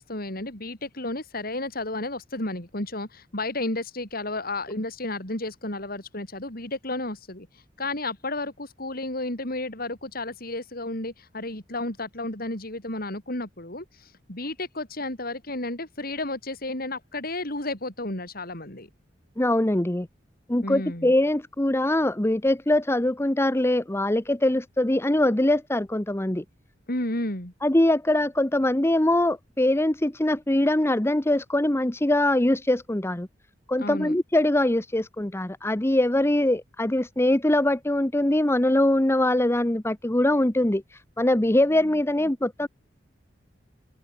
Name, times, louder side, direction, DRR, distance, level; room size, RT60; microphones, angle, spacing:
voice 1, 0.0-18.9 20.6-21.1 26.9-27.5 33.8-34.1, left 2 dB, 55° left, 6.9 m, -32 dB
voice 2, 19.4-20.1 20.5-26.4 27.6-33.3 33.7-40.8 41.2-42.7, left 1 dB, 15° left, 1.0 m, -22 dB
head